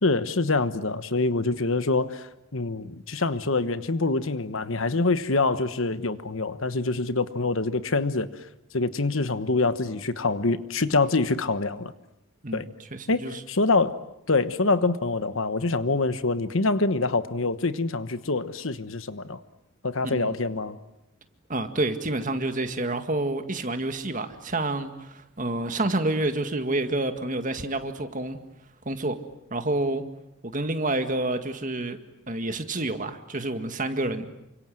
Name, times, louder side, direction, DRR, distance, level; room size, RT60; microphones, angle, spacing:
voice 1, 0.0-8.4 8.7-11.9 12.5-12.7 13.1-14.0 14.3-19.4 19.8-20.8, left 3 dB, 65° left, 12 dB, 1.2 m, -25 dB
voice 2, 12.4-13.4 20.0-20.4 21.5-28.4 28.9-29.2 29.5-30.0 30.4-32.0 32.3-34.3, right 2 dB, 35° right, 8 dB, 1.9 m, -28 dB
28.5 x 25.5 x 7.8 m, 0.85 s
head